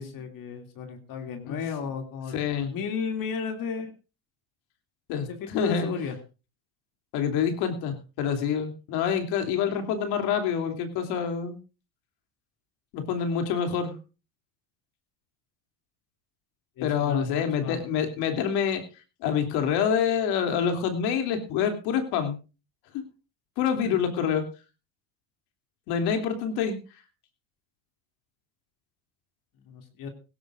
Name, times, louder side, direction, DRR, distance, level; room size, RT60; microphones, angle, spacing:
voice 1, 0.0-2.3 2.6-3.9 5.3-6.2 16.8-17.8 23.7-24.0 29.7-30.1, left 6 dB, 55° left, 5 dB, 2.8 m, -34 dB
voice 2, 2.3-2.7 5.1-5.9 7.1-11.6 12.9-13.9 16.8-18.8 19.2-22.4 23.6-24.5 25.9-26.8, left 7 dB, 70° left, 6 dB, 3.0 m, -27 dB
17.5 x 16.5 x 2.6 m, 0.31 s
supercardioid pair, 110°, 41 cm